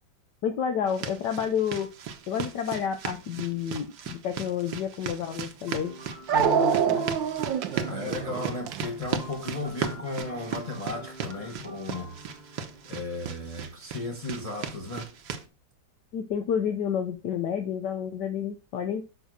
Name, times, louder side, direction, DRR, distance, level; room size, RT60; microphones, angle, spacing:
voice 1, 0.4-1.9 2.3-5.9 6.3-7.0 16.1-19.0, left 8 dB, 70° left, 1.5 m, -30 dB
sound 1, 0.9-15.4, right 7 dB, 70° right, 1.6 m, -37 dB
Dog, 5.2-5.3 6.3-9.7, right 9 dB, 85° right, 1.5 m, -26 dB
sound 2, 5.7-13.5, equal, 30° right, 1.1 m, -47 dB
voice 2, 7.8-12.1 12.8-15.1, left 2 dB, 25° left, 1.0 m, -35 dB
6.9 x 5.6 x 6.2 m
omnidirectional pair, 2.0 m